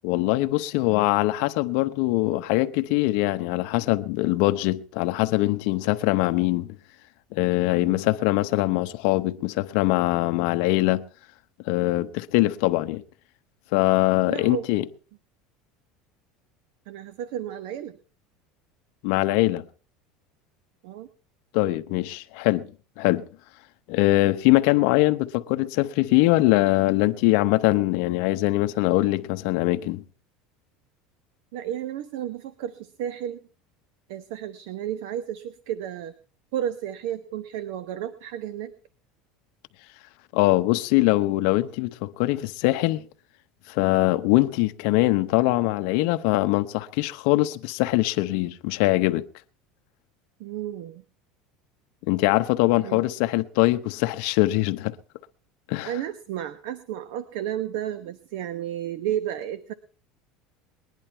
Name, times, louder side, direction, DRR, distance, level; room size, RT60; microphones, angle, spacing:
voice 1, 0.0-6.7 7.3-11.0 11.7-13.0 13.7-14.9 19.0-19.6 21.5-22.7 23.0-23.2 23.9-30.0 40.3-43.0 43.7-49.2 52.1-54.9 55.7-55.9, left 18 dB, 65° left, 0.9 m, -22 dB
voice 2, 7.7-8.0 14.3-14.6 16.9-18.0 20.8-21.1 31.5-33.4 34.1-36.1 36.5-38.7 50.4-51.0 52.8-53.0 55.8-59.7, right 11 dB, 75° right, 0.9 m, -32 dB
20.5 x 10.5 x 4.5 m
cardioid pair, 155°, 0 cm